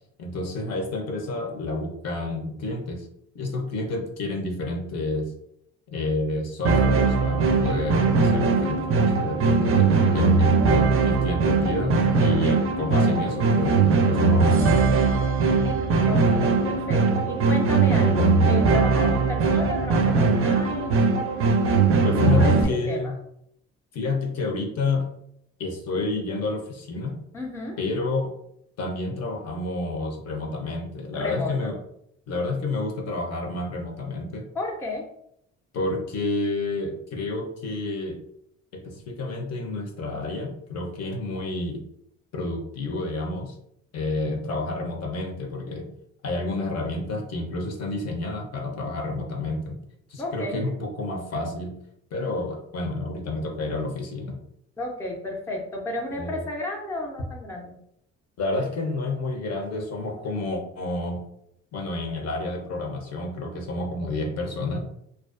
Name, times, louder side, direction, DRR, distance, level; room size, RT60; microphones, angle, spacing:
voice 1, 0.2-3.1 3.3-5.3 5.9-14.7 19.0-19.2 22.0-23.1 23.9-25.0 25.6-27.2 27.8-28.3 28.8-31.8 32.3-34.4 35.7-38.2 38.7-41.8 42.3-43.5 43.9-45.9 46.2-49.8 50.1-51.7 52.1-54.4 56.1-56.4 58.4-61.2 61.7-64.8, left 2 dB, 55° left, 3 dB, 0.6 m, -29 dB
News Background, 6.6-22.6, right 4 dB, 45° right, 0.4 m, -20 dB
voice 2, 16.1-21.0 22.2-23.1 27.3-27.8 31.1-31.7 34.5-35.1 50.2-50.6 54.8-57.7, left 1 dB, 10° left, 0 dB, 0.5 m, -32 dB
2.4 x 2.2 x 2.4 m, 0.73 s
cardioid pair, 90°, 30 cm